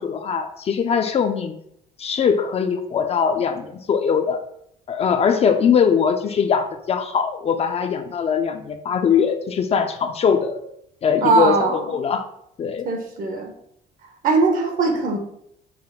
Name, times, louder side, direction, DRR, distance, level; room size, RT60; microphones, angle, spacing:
voice 1, 0.0-1.6 2.0-4.4 4.9-10.6 11.0-12.2 12.6-12.9, left 6 dB, 35° left, 7 dB, 0.4 m, -21 dB
voice 2, 11.2-12.0 12.8-13.5 14.2-15.2, right 4 dB, 55° right, 4 dB, 1.0 m, -20 dB
5.8 x 2.1 x 3.8 m, 0.72 s
cardioid pair, 110°, 17 cm